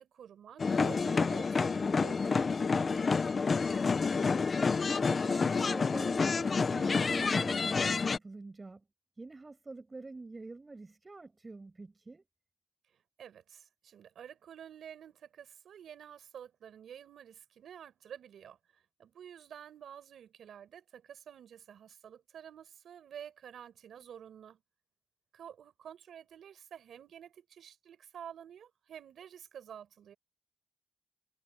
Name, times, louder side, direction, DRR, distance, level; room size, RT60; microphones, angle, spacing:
voice 1, 0.0-3.2 13.2-18.6 19.0-24.6 25.3-30.2, right 9 dB, 85° right, 4.8 m, -50 dB
sound 1, 0.6-8.2, left 4 dB, 50° left, 0.5 m, -29 dB
voice 2, 4.8-8.8 9.2-12.2, right 3 dB, 35° right, 7.7 m, -46 dB
cardioid pair, 65°, 0 cm